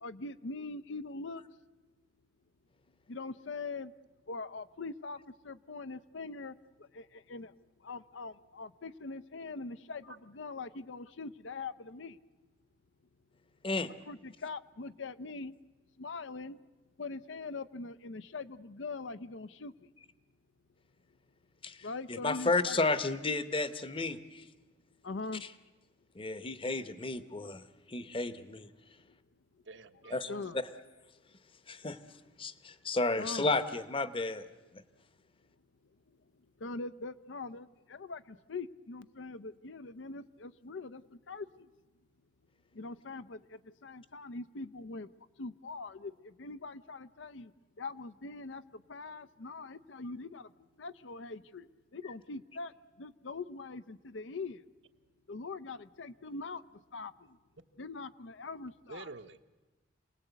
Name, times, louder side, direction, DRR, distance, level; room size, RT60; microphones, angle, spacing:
voice 1, 0.0-1.4 3.1-3.9 4.3-6.6 6.9-7.5 7.8-12.2 14.1-15.5 16.0-16.6 17.0-19.7 21.8-22.8 25.0-25.4 30.3-30.6 33.2-33.5 36.6-41.5 42.7-45.1 45.4-47.5 47.8-50.5 50.8-51.7 51.9-52.7 53.0-54.6 55.3-56.6 56.9-57.1 57.8-59.1, left 3 dB, 85° left, 14 dB, 0.7 m, -42 dB
voice 2, 22.1-24.4 26.1-28.7 30.1-30.3 31.7-32.0 32.4-34.4, left 3 dB, 30° left, 13 dB, 0.9 m, -32 dB
voice 3, 29.7-30.4 58.9-59.4, right 3 dB, 75° right, 9 dB, 1.1 m, -47 dB
27.5 x 19.0 x 8.2 m, 1.2 s
head